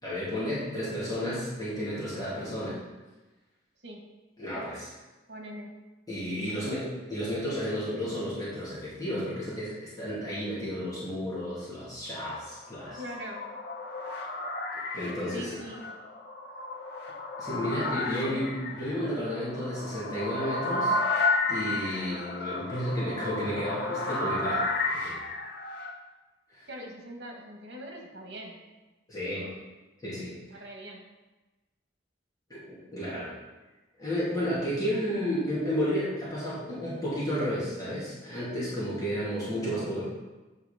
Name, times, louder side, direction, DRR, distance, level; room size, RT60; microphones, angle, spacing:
voice 1, 0.0-2.8 4.4-4.9 6.1-13.0 14.9-15.6 17.4-21.0 21.5-25.2 26.5-26.7 29.1-29.5 30.0-30.3 32.5-33.3 34.0-40.0, equal, 20° left, -9 dB, 2.7 m, -32 dB
voice 2, 5.3-5.7 6.5-6.8 12.8-13.5 15.3-15.9 18.2-18.8 26.7-28.6 29.3-29.5 30.5-31.0, right 1 dB, 70° right, 1 dB, 1.8 m, -42 dB
sound 1, 12.5-25.9, left 2 dB, 65° left, 1.1 m, -32 dB
8.0 x 5.7 x 5.2 m, 1.2 s
head